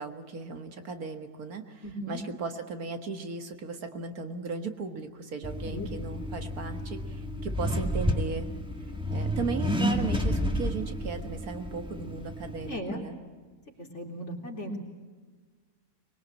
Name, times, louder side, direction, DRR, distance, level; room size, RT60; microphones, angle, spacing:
voice 1, 0.0-8.5 9.1-13.2, right 4 dB, 70° right, 7 dB, 2.2 m, -36 dB
voice 2, 1.8-2.2 5.7-5.9 12.6-13.0 13.8-14.7, equal, 45° left, 1 dB, 4.0 m, -37 dB
Accelerating revving vroom, 5.4-12.8, equal, 5° right, 2.0 m, -31 dB
24.0 x 21.5 x 8.9 m, 1.4 s
omnidirectional pair, 1.6 m